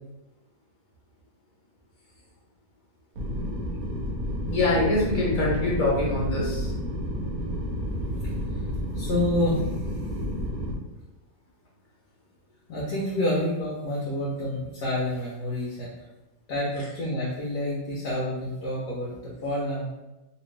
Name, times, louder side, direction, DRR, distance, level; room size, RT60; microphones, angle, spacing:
sound 1, 3.2-10.7, equal, 65° right, 1.0 m, -30 dB
voice 1, 4.5-6.7, left 2 dB, 55° left, -5 dB, 1.5 m, -24 dB
voice 2, 8.9-9.7 12.7-15.9 16.5-19.9, left 1 dB, 70° left, -5 dB, 1.2 m, -28 dB
3.2 x 2.5 x 3.2 m, 1.0 s
omnidirectional pair, 1.8 m